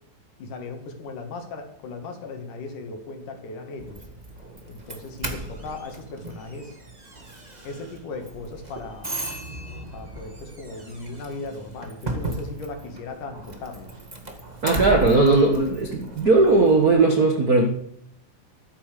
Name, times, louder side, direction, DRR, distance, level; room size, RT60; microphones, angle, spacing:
voice 1, 0.4-4.1 4.7-6.8 7.6-9.2 9.9-13.9, left 3 dB, 65° left, 5 dB, 3.4 m, -37 dB
Doorbell, 3.8-16.9, right 1 dB, 25° right, 0.9 m, -36 dB
voice 2, 14.6-17.7, right 3 dB, 60° right, 3 dB, 0.9 m, -18 dB
13.0 x 9.5 x 6.8 m, 0.72 s
omnidirectional pair, 4.0 m